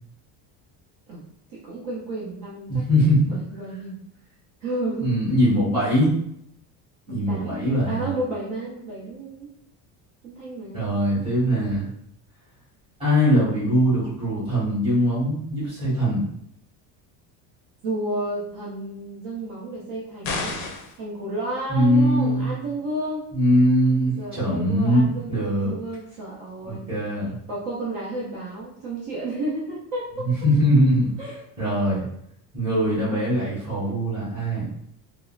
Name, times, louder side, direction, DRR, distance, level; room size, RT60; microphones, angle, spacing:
voice 1, 1.5-4.0 4.6-5.2 7.1-9.5 10.2-10.8 17.8-20.7 21.0-23.3 24.2-26.9 27.5-30.3 31.2-31.4, right 2 dB, 55° right, -5 dB, 0.7 m, -32 dB
voice 2, 2.7-3.3 5.0-6.1 7.1-8.1 10.7-11.9 13.0-16.2 21.7-22.5 23.3-25.7 26.6-27.3 30.2-31.1 31.6-32.0 32.5-34.7, equal, 15° right, -10 dB, 1.3 m, -21 dB
sound 1, 20.2-21.0, left 4 dB, 45° left, 0.5 m, -30 dB
3.5 x 2.0 x 2.4 m, 0.74 s
cardioid pair, 175°, 39 cm